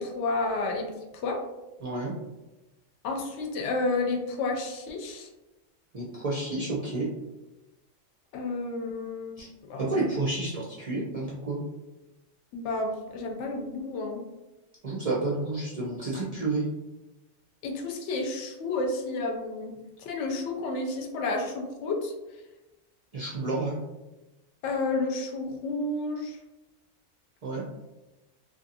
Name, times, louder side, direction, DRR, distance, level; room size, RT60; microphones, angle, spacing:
voice 1, 0.0-1.4 3.0-5.3 8.3-9.4 9.7-10.0 12.5-14.2 17.6-22.1 24.6-26.4, left 3 dB, 70° left, 2 dB, 0.8 m, -31 dB
voice 2, 1.8-2.1 5.9-7.1 9.4-9.5 9.8-11.6 14.8-16.6 23.1-23.8 27.4-27.6, right 2 dB, 45° right, -7 dB, 0.5 m, -30 dB
2.7 x 2.6 x 2.6 m, 1.0 s
omnidirectional pair, 1.3 m